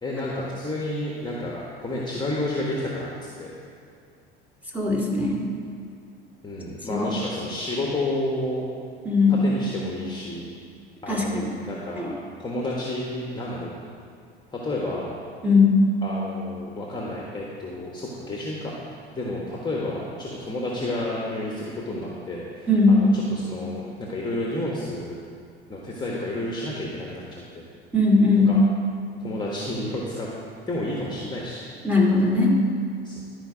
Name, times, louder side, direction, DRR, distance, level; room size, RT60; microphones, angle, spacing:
voice 1, 0.0-3.5 6.4-8.7 9.3-10.5 11.0-12.1 12.4-13.7 14.5-15.1 16.0-18.7 19.1-25.2 25.7-27.6 28.5-28.6 29.2-30.3 30.7-31.6 33.0-33.2, left 1 dB, 15° left, -4 dB, 1.4 m, -31 dB
voice 2, 4.7-5.4 6.9-7.1 9.0-9.4 11.1-11.5 12.0-12.1 15.4-15.8 22.7-23.1 27.9-28.6 31.8-32.6, left 3 dB, 5° right, -3 dB, 2.2 m, -19 dB
12.0 x 5.0 x 5.0 m, 2.3 s
hypercardioid pair, 75°, 31 cm